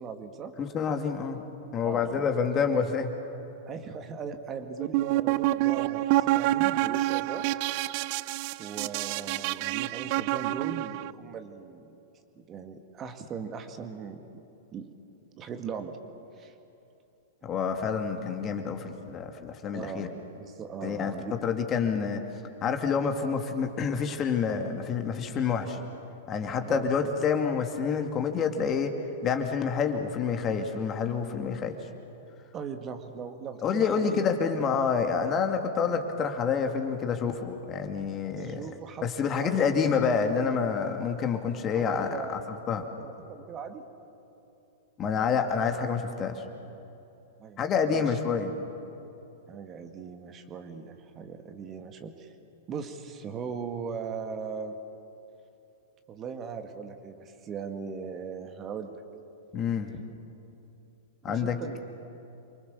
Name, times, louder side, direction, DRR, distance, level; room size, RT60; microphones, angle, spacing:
voice 1, 0.0-0.5 1.8-2.3 3.7-7.5 8.6-11.9 12.4-14.2 14.7-14.9 15.4-16.0 16.4-16.5 19.7-21.4 26.6-26.9 32.5-34.3 38.3-39.1 39.3-39.7 41.7-42.4 42.7-43.8 47.4-48.2 49.5-52.3 52.7-54.8 56.1-58.9 61.2-61.8, right 6 dB, 25° right, 6 dB, 2.0 m, -39 dB
voice 2, 0.6-1.4 1.7-3.1 17.4-20.1 20.8-22.3 22.6-25.8 26.3-28.9 29.2-31.7 33.6-38.6 39.0-42.4 42.7-42.8 45.0-46.4 47.6-48.5 59.5-59.9 61.2-61.8, left 6 dB, 30° left, 5 dB, 2.5 m, -28 dB
sound 1, 4.8-11.1, right 17 dB, 45° right, 0.5 m, -27 dB
29.0 x 24.5 x 7.1 m, 2.9 s
figure-of-eight pair, 100°, 0 cm